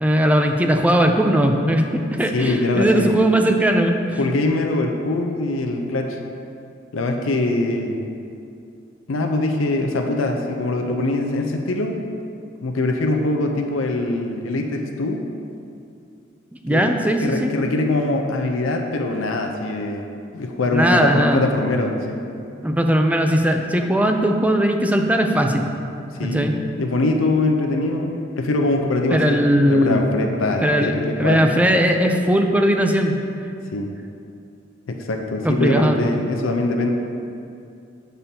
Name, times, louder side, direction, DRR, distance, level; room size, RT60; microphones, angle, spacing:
voice 1, 0.0-4.2 16.6-17.5 20.7-21.5 22.6-25.7 26.2-26.5 29.1-30.1 30.6-33.2 35.4-36.0, equal, 10° right, 4 dB, 0.4 m, -19 dB
voice 2, 2.3-3.2 4.2-6.2 6.9-8.0 9.1-12.0 12.6-15.2 16.7-22.2 26.2-26.5 26.8-31.6 33.7-33.9 34.9-36.9, left 2 dB, 90° left, 3 dB, 0.5 m, -23 dB
7.4 x 6.8 x 2.8 m, 2.5 s
head